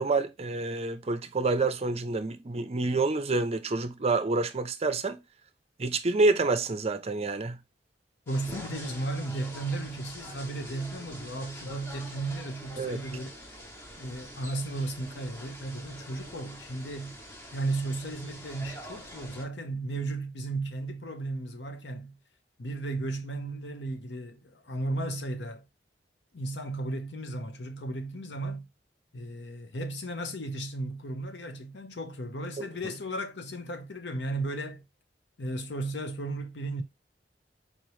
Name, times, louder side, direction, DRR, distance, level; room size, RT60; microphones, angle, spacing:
voice 1, 0.0-5.2 5.8-7.6 12.8-13.0 32.6-32.7, right 3 dB, 35° right, 0.5 m, -28 dB
voice 2, 8.3-13.3 14.0-17.2 17.5-22.1 22.6-25.6 26.3-28.7 29.1-34.8 35.4-36.8, right 2 dB, 75° left, 0.8 m, -35 dB
sound 1, 8.3-19.4, equal, 15° left, 0.9 m, -45 dB
4.3 x 2.9 x 3.1 m
head